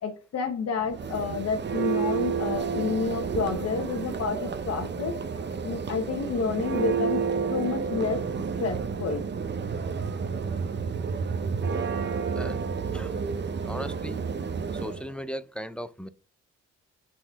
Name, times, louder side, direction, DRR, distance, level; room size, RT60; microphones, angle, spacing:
voice 1, 0.0-5.2 5.6-7.2 7.5-8.2 8.6-9.2, left 5 dB, 55° left, 1.0 m, -29 dB
Church bell, 0.8-15.1, right 5 dB, 35° right, 0.8 m, -30 dB
voice 2, 12.3-13.1 13.6-14.2 14.7-16.1, equal, 5° left, 0.5 m, -37 dB
5.8 x 4.2 x 4.6 m
cardioid pair, 90°, 30 cm